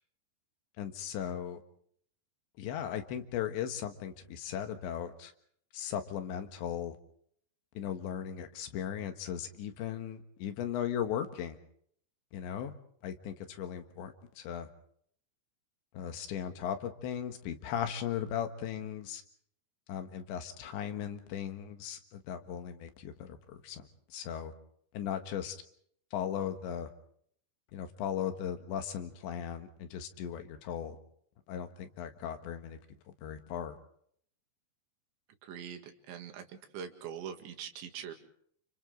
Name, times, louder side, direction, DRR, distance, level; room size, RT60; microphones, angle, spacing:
voice 1, 0.8-1.6 2.6-5.3 5.7-7.0 7.8-11.6 12.3-12.7 13.0-14.7 15.9-19.2 19.9-24.5 24.9-25.6 26.1-26.9 27.7-31.0 31.5-32.8 33.2-33.8, left 9 dB, 80° left, 7 dB, 3.9 m, -37 dB
voice 2, 35.4-38.1, right 8 dB, 85° right, 5 dB, 4.3 m, -43 dB
29.5 x 29.5 x 3.9 m, 0.65 s
omnidirectional pair, 5.1 m